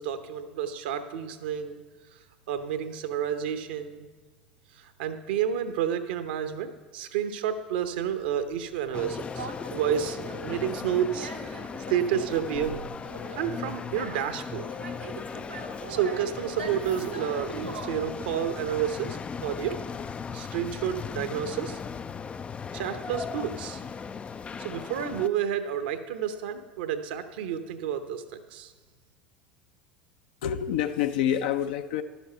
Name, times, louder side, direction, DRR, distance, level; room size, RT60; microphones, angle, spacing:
voice 1, 0.0-1.8 2.1-2.2 2.5-4.1 4.7-12.8 13.3-14.6 15.9-19.8 20.3-21.8 22.7-23.8 24.6-28.7, right 9 dB, 65° right, 9 dB, 0.8 m, -30 dB
Conversation, 7.8-19.7, right 3 dB, 90° right, 1.2 m, -42 dB
sound 1, 8.9-25.3, left 6 dB, 20° left, 0.3 m, -37 dB
voice 2, 30.4-32.0, left 10 dB, 65° left, 9 dB, 0.6 m, -27 dB
12.0 x 7.2 x 5.5 m, 1.3 s
figure-of-eight pair, 75°, 5 cm